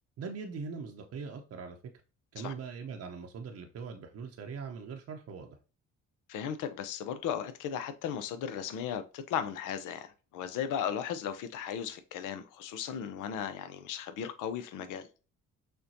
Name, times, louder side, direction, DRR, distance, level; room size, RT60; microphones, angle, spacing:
voice 1, 0.2-1.8 2.3-5.6, right 5 dB, 50° right, 0.7 m, -41 dB
voice 2, 6.3-15.1, left 8 dB, 70° left, 0.6 m, -36 dB
6.4 x 2.2 x 2.7 m
hypercardioid pair, 55°, 33 cm